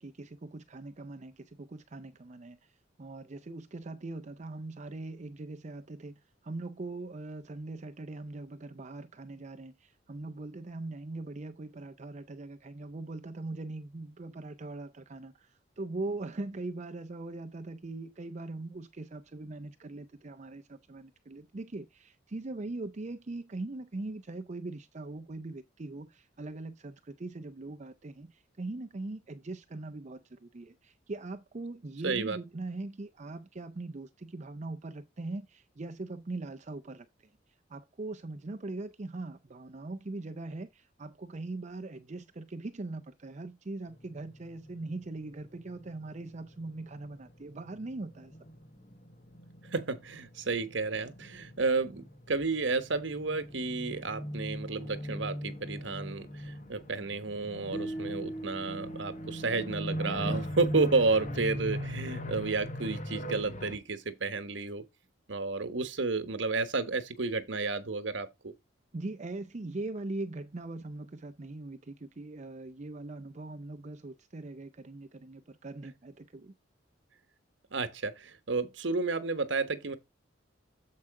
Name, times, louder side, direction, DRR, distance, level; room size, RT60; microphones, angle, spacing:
voice 1, 0.0-2.6 3.0-37.1 37.7-48.3 68.9-76.5, right 2 dB, 40° right, 0.5 m, -41 dB
voice 2, 32.0-32.4 49.7-64.8 65.3-68.5 77.7-80.0, right 3 dB, 75° right, 1.1 m, -31 dB
sound 1, 43.9-47.0 47.3-63.8, equal, 40° left, 1.1 m, -40 dB
sound 2, 57.7-60.9, right 1 dB, 5° left, 1.4 m, -41 dB
7.6 x 4.7 x 4.7 m
head